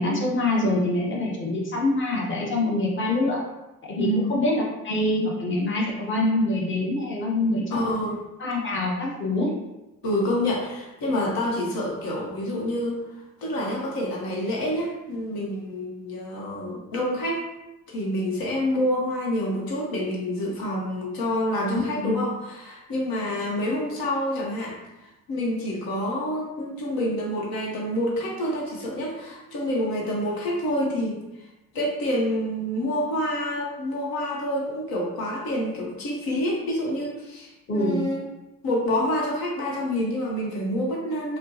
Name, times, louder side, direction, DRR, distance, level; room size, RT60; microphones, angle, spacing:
voice 1, 0.0-3.4 3.8-7.8 8.4-9.5 22.0-22.2 37.7-38.1, left 2 dB, 35° left, -2 dB, 1.0 m, -25 dB
voice 2, 4.0-4.3 7.7-8.2 10.0-13.0 13.4-17.4 17.9-31.2 31.7-38.3 38.6-41.4, left 1 dB, 70° left, -3 dB, 0.9 m, -27 dB
4.2 x 2.0 x 2.7 m, 0.98 s
supercardioid pair, 75°, 36 cm